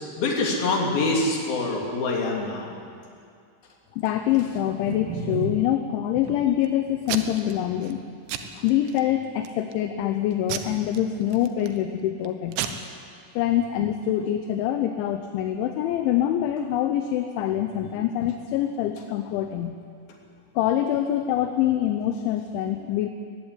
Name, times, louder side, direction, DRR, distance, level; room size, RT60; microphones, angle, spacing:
voice 1, 0.2-2.7, left 2 dB, 50° left, -1 dB, 4.4 m, -25 dB
voice 2, 3.9-8.0 8.5-12.6 13.4-19.8 20.6-23.1, left 11 dB, 80° left, 6 dB, 3.1 m, -25 dB
Packing tape duct tape / Tearing, 4.3-5.7 6.2-6.7 7.1-7.5 7.8-8.0 8.3-9.0 9.5-9.8 10.5-11.8 12.2-12.3 12.5-12.7, right 7 dB, 75° right, 3.2 m, -32 dB
20.0 x 15.5 x 9.9 m, 2.3 s
omnidirectional pair, 5.7 m